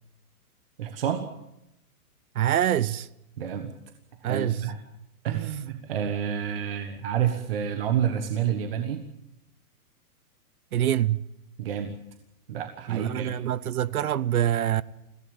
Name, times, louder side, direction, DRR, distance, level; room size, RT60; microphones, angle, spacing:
voice 1, 0.8-1.3 3.4-3.7 4.2-4.8 5.2-9.0 11.6-11.9 12.5-13.3, right 9 dB, 40° right, 1.4 m, -29 dB
voice 2, 2.3-3.1 4.2-4.7 5.4-5.5 10.7-11.3 12.9-14.8, right 11 dB, 70° right, 0.8 m, -25 dB
22.0 x 16.5 x 8.8 m
hypercardioid pair, 180°, 45 cm